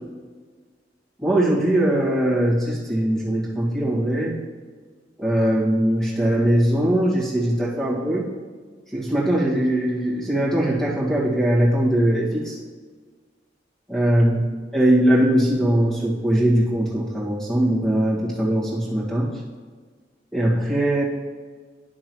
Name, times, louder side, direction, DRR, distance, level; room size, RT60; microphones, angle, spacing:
voice 1, 1.2-4.4 5.2-8.2 8.9-12.6 13.9-14.5 14.7-19.3 20.3-21.0, right 1 dB, 5° left, -6 dB, 1.9 m, -21 dB
10.5 x 6.5 x 3.1 m, 1.5 s
head